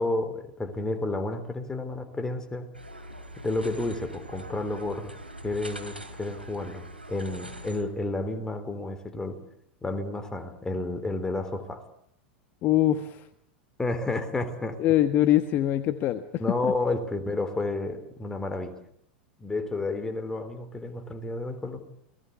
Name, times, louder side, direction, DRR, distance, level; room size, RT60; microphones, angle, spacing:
voice 1, 0.0-2.7 3.4-5.1 5.4-6.8 7.1-9.4 9.8-11.8 13.8-14.8 16.4-18.7 19.4-21.8, left 2 dB, 10° left, 8 dB, 3.8 m, -31 dB
sound 1, 2.7-7.8, right 1 dB, 90° right, 3.4 m, -42 dB
voice 2, 12.6-13.2 14.8-16.2 16.6-16.7, left 13 dB, 40° left, 11 dB, 1.3 m, -23 dB
29.5 x 19.5 x 8.3 m, 0.73 s
figure-of-eight pair, 85°, 5 cm